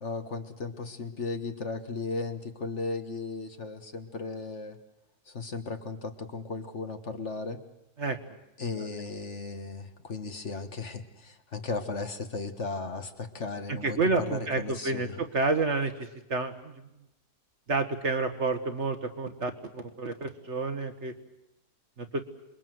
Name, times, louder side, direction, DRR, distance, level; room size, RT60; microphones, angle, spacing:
voice 1, 0.0-4.8 5.3-7.6 8.6-15.2, left 3 dB, 45° left, 8 dB, 1.8 m, -36 dB
voice 2, 13.8-15.9 16.3-16.7 17.7-21.1 22.0-22.2, right 3 dB, 45° right, 8 dB, 1.7 m, -29 dB
27.5 x 22.0 x 7.8 m, 0.89 s
omnidirectional pair, 1.7 m